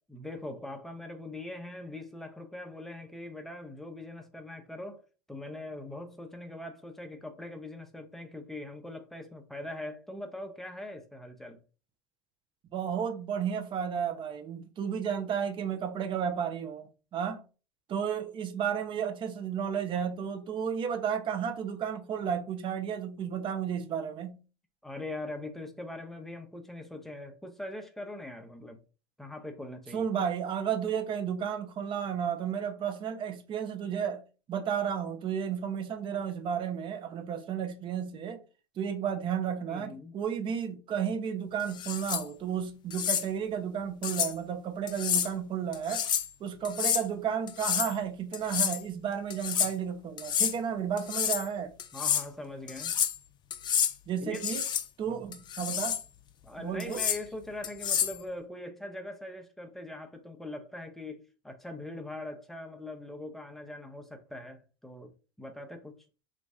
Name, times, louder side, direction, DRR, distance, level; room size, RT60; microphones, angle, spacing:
voice 1, 0.1-5.0 5.3-11.6 24.8-28.8 29.2-30.0 39.7-40.2 51.9-53.0 54.2-54.4 55.1-55.3 56.4-65.1 65.4-66.1, left 1 dB, ahead, 0.7 m, -42 dB
voice 2, 12.7-17.4 17.9-24.4 29.9-34.2 34.5-38.4 38.8-46.0 46.4-51.7 54.1-54.6 55.0-56.0 56.6-57.0, right 8 dB, 35° right, 0.7 m, -32 dB
sound 1, 41.7-42.2 42.9-43.2 44.0-44.3 44.9-45.3 45.7-46.3 46.6-47.0 47.5-47.9 48.3-48.8 49.3-49.7 50.2-50.5 51.0-51.5 51.8-52.2 52.7-53.2 53.5-53.9 54.3-54.8 55.3-56.0 56.8-57.2 57.6-58.2, left 9 dB, 35° left, 0.5 m, -29 dB
3.0 x 2.6 x 3.5 m
hypercardioid pair, 90°, 14 cm